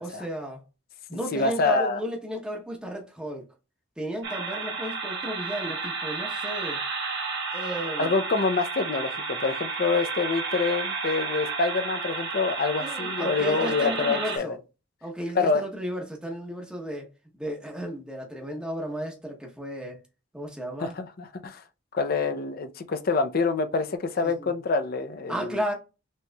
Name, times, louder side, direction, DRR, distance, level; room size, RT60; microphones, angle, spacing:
voice 1, 0.0-0.6 1.1-3.5 4.0-6.8 7.5-8.2 12.8-14.6 15.0-17.1 17.4-20.0 20.3-20.9 24.2-24.5 25.3-25.7, equal, 5° right, 0.8 m, -34 dB
voice 2, 1.1-2.0 8.0-14.6 15.3-15.6 20.8-21.6 21.9-25.6, left 4 dB, 50° left, 0.5 m, -26 dB
sound 1, 4.2-14.4, right 4 dB, 60° right, 1.1 m, -32 dB
6.2 x 3.0 x 2.2 m
head